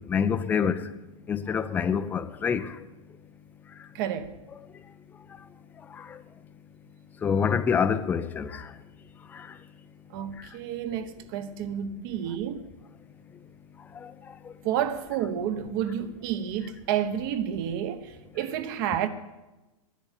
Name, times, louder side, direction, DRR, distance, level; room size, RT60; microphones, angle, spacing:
voice 1, 0.1-0.9 1.3-2.7 6.0-6.1 7.2-8.7 9.3-9.5 14.0-14.1, left 7 dB, 10° left, 0.5 m, -26 dB
voice 2, 3.9-4.3 10.1-12.6 14.6-19.1, right 9 dB, 40° right, 1.0 m, -30 dB
12.0 x 10.5 x 8.2 m
hypercardioid pair, 155°, 17 cm